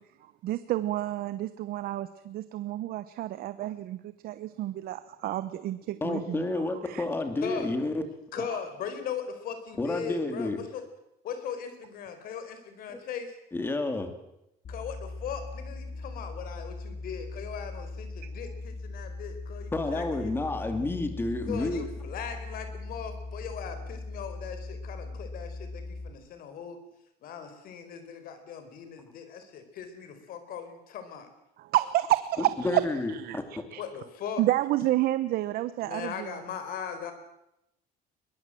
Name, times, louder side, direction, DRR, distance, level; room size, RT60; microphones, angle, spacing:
voice 1, 0.2-7.0 18.2-18.3 31.6-32.8 33.1-33.8 34.4-36.4, right 14 dB, 60° right, 13 dB, 1.0 m, -30 dB
voice 2, 6.0-8.0 9.8-10.6 13.5-14.1 19.7-21.8 32.6-33.4, left 2 dB, 10° left, 7 dB, 2.5 m, -30 dB
voice 3, 7.4-7.7 8.3-10.8 11.2-13.3 14.7-20.3 21.5-26.8 27.2-31.3 33.8-34.4 35.8-37.1, left 7 dB, 55° left, 9 dB, 4.5 m, -39 dB
sound 1, 14.6-26.1, left 2 dB, 35° left, 3.5 m, -40 dB
22.0 x 22.0 x 7.7 m, 0.85 s
cardioid pair, 165°, 18 cm